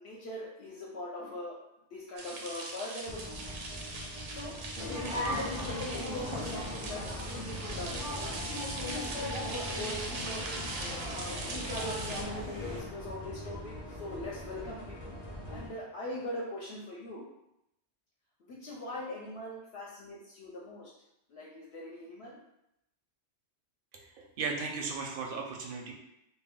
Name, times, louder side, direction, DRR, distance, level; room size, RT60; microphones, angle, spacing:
voice 1, 0.0-1.6 1.9-3.5 4.3-4.6 4.9-8.2 8.8-10.6 11.0-12.3 12.6-15.1 15.5-17.3 18.4-20.9 21.3-22.4, left 1 dB, 70° left, -5 dB, 0.8 m, -41 dB
sound 1, 2.2-12.2, right 2 dB, 90° right, 1.0 m, -41 dB
sound 2, 3.0-15.7, left 1 dB, 40° left, 0.6 m, -44 dB
sound 3, 4.7-12.8, left 1 dB, 10° right, 0.5 m, -38 dB
voice 2, 23.9-25.9, right 4 dB, 60° right, 0 dB, 0.6 m, -36 dB
2.2 x 2.2 x 3.5 m, 0.83 s
omnidirectional pair, 1.2 m